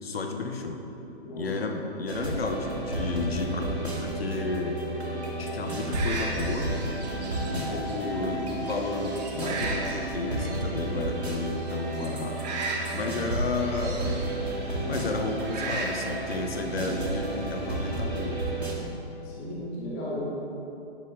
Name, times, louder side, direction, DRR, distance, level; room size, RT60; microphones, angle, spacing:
voice 1, 0.0-0.8 1.3-4.8 5.4-6.7 7.5-12.5 12.9-14.2 14.9-18.4, left 3 dB, 65° left, 4 dB, 1.0 m, -32 dB
sound 1, 2.1-18.7, right 1 dB, 75° right, 2.3 m, -32 dB
sound 2, 5.6-17.9, right 3 dB, 40° right, 1.6 m, -38 dB
voice 2, 19.2-20.2, left 1 dB, 5° left, -6 dB, 0.3 m, -36 dB
11.0 x 9.2 x 3.9 m, 2.9 s
figure-of-eight pair, 125°, 32 cm